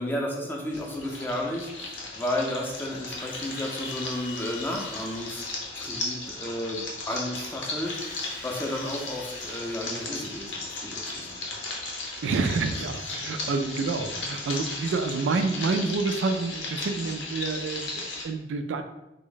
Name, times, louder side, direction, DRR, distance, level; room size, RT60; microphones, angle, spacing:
voice 1, 0.0-8.2 8.4-11.4 12.7-12.8, left 1 dB, 10° left, -1 dB, 0.5 m, -33 dB
sound 1, 0.7-18.2, left 3 dB, 90° left, 0.8 m, -36 dB
Drill, 3.2-5.9 7.8-10.3, left 3 dB, 55° left, 0.6 m, -44 dB
voice 2, 12.2-18.8, right 4 dB, 80° right, 7 dB, 0.3 m, -28 dB
3.4 x 2.0 x 3.8 m, 0.96 s
head